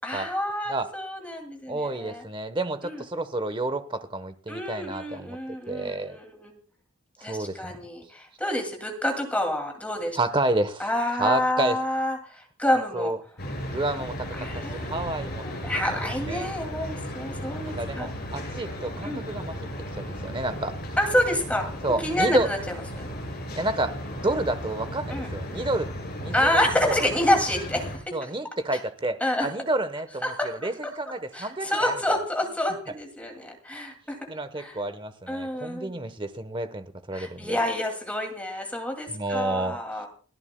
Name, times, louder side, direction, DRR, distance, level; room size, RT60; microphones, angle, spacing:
voice 1, 0.0-2.2 2.8-3.0 4.5-6.6 7.2-10.2 10.8-13.1 14.4-15.1 15.4-18.1 19.0-19.2 21.0-21.7 22.0-22.6 23.0-23.1 25.1-25.3 26.3-28.3 29.2-29.5 30.2-30.7 31.3-34.2 34.6-34.8 35.3-36.0 37.1-40.1, left 1 dB, 5° left, 3 dB, 2.3 m, -28 dB
voice 2, 1.7-6.2 7.2-7.8 10.1-10.8 11.2-11.8 12.9-13.2 13.7-15.5 16.3-16.5 17.6-19.7 20.0-20.8 21.8-22.5 23.5-25.9 26.2-27.1 28.1-32.2 34.3-37.6 39.1-39.8, right 2 dB, 20° right, 10 dB, 0.9 m, -30 dB
sound 1, 13.4-28.0, equal, 45° left, 5.4 m, -35 dB
30.0 x 10.5 x 2.2 m, 0.41 s
head